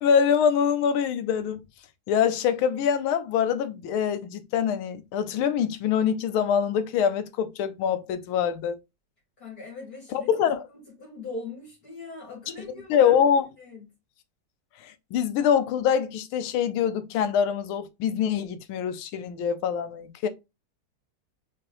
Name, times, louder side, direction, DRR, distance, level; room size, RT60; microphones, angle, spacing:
voice 1, 0.0-1.6 2.1-8.8 10.1-10.6 12.9-13.4 14.8-20.3, left 8 dB, 85° left, 1.6 m, -24 dB
voice 2, 9.4-10.3 10.7-13.2 13.6-13.9, left 3 dB, 45° left, 2.7 m, -40 dB
4.8 x 3.4 x 3.1 m
omnidirectional pair, 2.2 m